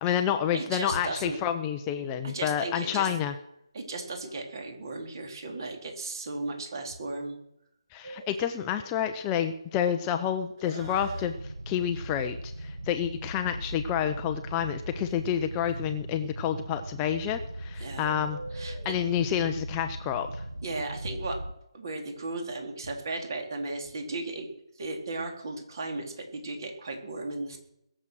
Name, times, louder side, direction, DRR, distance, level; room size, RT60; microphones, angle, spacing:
voice 1, 0.0-3.3 7.9-11.3 11.7-20.4, left 9 dB, 15° left, 7 dB, 0.7 m, -29 dB
voice 2, 0.5-1.4 2.2-3.1 3.7-7.4 17.8-18.1 18.5-19.0 20.6-21.4 21.7-24.5 24.8-27.6, right 2 dB, 45° right, 3 dB, 3.8 m, -35 dB
Bird, 8.0-21.0, right 2 dB, 25° right, 2.3 m, -49 dB
sound 1, 10.8-21.5, right 1 dB, 90° right, 1.2 m, -39 dB
21.5 x 7.5 x 6.3 m, 0.81 s
figure-of-eight pair, 155°, 3 cm